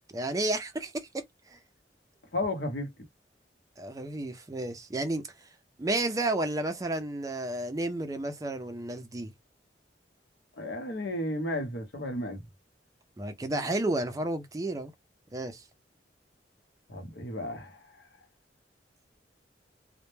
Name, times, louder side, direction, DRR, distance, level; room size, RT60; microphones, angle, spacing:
voice 1, 0.1-1.6 3.8-5.5 5.8-9.3 13.2-14.9 15.3-15.7, right 2 dB, 20° right, 0.4 m, -32 dB
voice 2, 2.3-2.9 10.6-12.4 16.9-18.1, left 1 dB, 65° left, 0.8 m, -33 dB
2.1 x 2.1 x 3.0 m
head